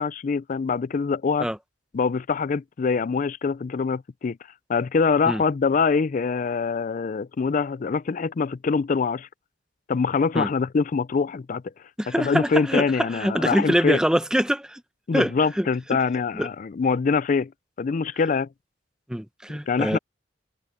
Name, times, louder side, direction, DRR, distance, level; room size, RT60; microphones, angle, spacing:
voice 1, 0.0-1.5 1.9-4.4 4.7-9.3 9.9-11.7 12.2-14.0 15.1-17.5 17.8-18.5 19.7-20.0, left 5 dB, 45° left, 0.4 m, -24 dB
voice 2, 12.0-14.8 15.1-15.7 16.3-16.5 19.1-20.0, equal, 5° right, 0.7 m, -24 dB
head